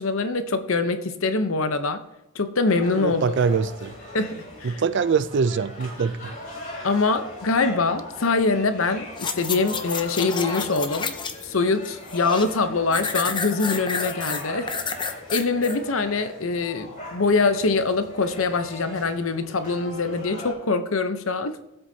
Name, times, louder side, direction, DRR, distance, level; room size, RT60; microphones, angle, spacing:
voice 1, 0.0-2.0 2.3-3.2 4.1-4.8 6.8-11.2 11.4-14.7 15.0-21.6, left 3 dB, 70° left, 0.8 m, -24 dB
sound 1, 2.7-20.5, left 1 dB, 40° left, 3.8 m, -39 dB
voice 2, 3.0-3.9 4.6-6.3, right 5 dB, 55° right, 0.4 m, -23 dB
sound 2, 9.2-11.5 11.8-12.6 12.9-15.8 16.2-16.3, left 5 dB, 20° left, 0.6 m, -30 dB
18.5 x 8.0 x 2.8 m
head